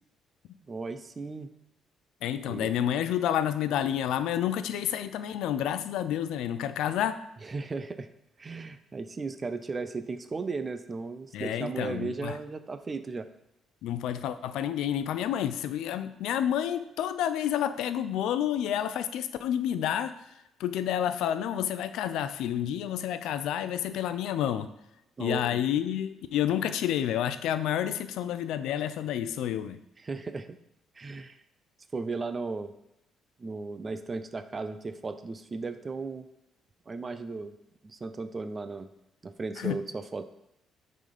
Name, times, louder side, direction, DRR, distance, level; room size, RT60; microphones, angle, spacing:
voice 1, 0.7-1.5 2.4-2.7 7.4-8.1 8.4-13.3 25.2-25.6 30.0-30.6 30.9-31.4 31.9-32.7 33.4-36.3 36.9-37.5 37.8-38.9 39.2-40.3, right 4 dB, 20° right, 10 dB, 0.4 m, -36 dB
voice 2, 2.2-7.2 11.3-12.4 13.8-20.1 20.6-24.7 25.2-29.8 39.6-39.8, left 10 dB, 80° left, 11 dB, 0.5 m, -29 dB
9.0 x 4.0 x 5.0 m, 0.87 s
cardioid pair, 175°, 0 cm